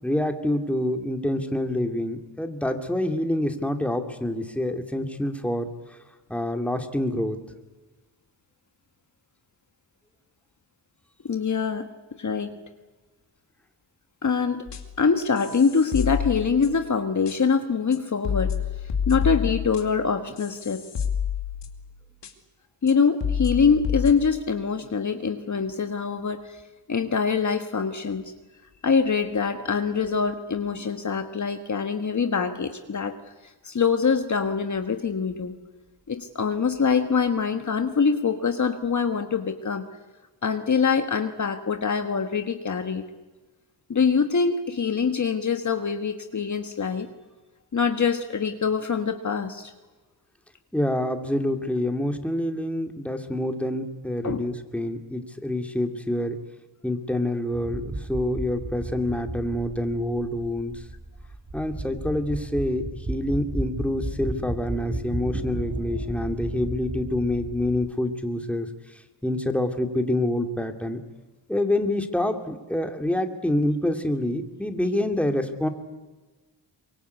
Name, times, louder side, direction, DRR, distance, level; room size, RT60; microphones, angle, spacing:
voice 1, 0.0-6.0 6.3-7.4 50.7-56.4 56.8-60.8 61.5-71.0 71.5-75.7, left 1 dB, 5° left, 5 dB, 2.6 m, -27 dB
voice 2, 11.2-11.9 12.2-12.5 14.2-14.6 15.0-18.6 19.1-20.8 22.8-26.6 26.9-28.3 28.8-33.2 33.4-35.5 36.1-39.8 40.4-43.0 43.9-47.1 47.7-49.7 54.2-54.4, left 5 dB, 45° left, 7 dB, 1.5 m, -24 dB
sound 1, 14.7-15.0 15.4-16.9 17.3-17.4 17.9-18.0 18.2-21.9 22.2-22.3 22.9-23.0 23.2-24.1, left 8 dB, 75° left, 2.6 m, -29 dB
sound 2, 57.5-67.9, right 2 dB, 30° right, 4.6 m, -34 dB
24.0 x 22.5 x 8.3 m, 1.2 s
cardioid pair, 85°, 42 cm